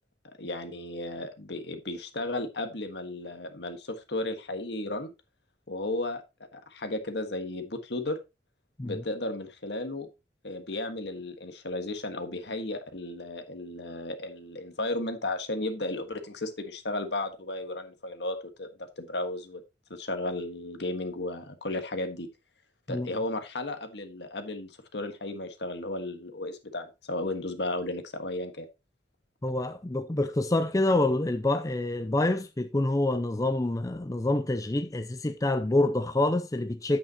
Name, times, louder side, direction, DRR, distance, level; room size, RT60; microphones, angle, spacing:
voice 1, 0.4-5.1 5.7-6.2 6.5-8.2 8.8-10.1 10.4-19.6 19.9-22.3 22.9-28.7, left 2 dB, 70° left, 1.5 m, -34 dB
voice 2, 29.4-37.0, left 2 dB, 20° left, 0.5 m, -27 dB
8.9 x 8.5 x 2.9 m
head